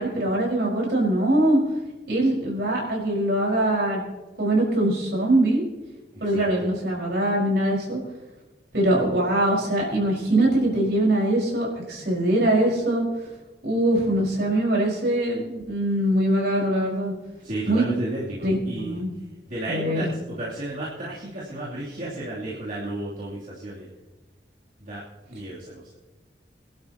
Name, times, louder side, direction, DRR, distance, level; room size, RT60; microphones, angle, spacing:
voice 1, 0.0-1.6 2.1-4.0 4.4-5.6 6.2-8.0 8.7-13.1 13.6-17.1 17.7-17.8 18.4-19.1 19.7-20.1, right 1 dB, 65° right, -3 dB, 5.0 m, -22 dB
voice 2, 6.1-6.5 17.4-19.0 19.5-23.9 24.8-25.0 25.3-25.8, right 1 dB, 50° right, -9 dB, 3.0 m, -33 dB
25.0 x 12.0 x 2.9 m, 1.2 s
head